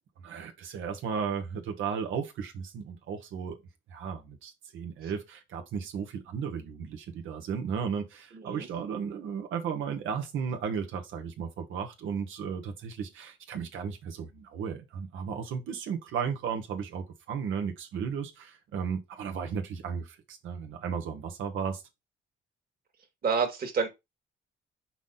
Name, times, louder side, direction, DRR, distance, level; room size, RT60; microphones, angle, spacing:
voice 1, 0.2-3.6 3.9-21.8, right 6 dB, 80° right, 1.4 m, -35 dB
voice 2, 23.2-23.9, right 5 dB, 50° right, 2.0 m, -28 dB
5.9 x 4.2 x 3.9 m
cardioid pair, 90°, 20 cm